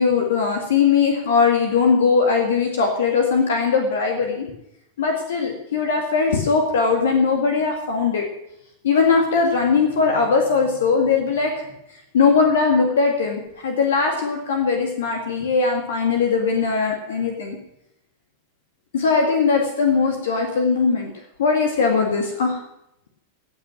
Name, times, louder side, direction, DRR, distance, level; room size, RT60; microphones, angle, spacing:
voice 1, 0.0-4.5 5.0-8.3 8.8-11.6 12.1-17.6 18.9-21.1 21.4-22.6, left 5 dB, 60° left, 3 dB, 2.1 m, -20 dB
17.0 x 6.1 x 7.4 m, 0.81 s
figure-of-eight pair, 90°, 0 cm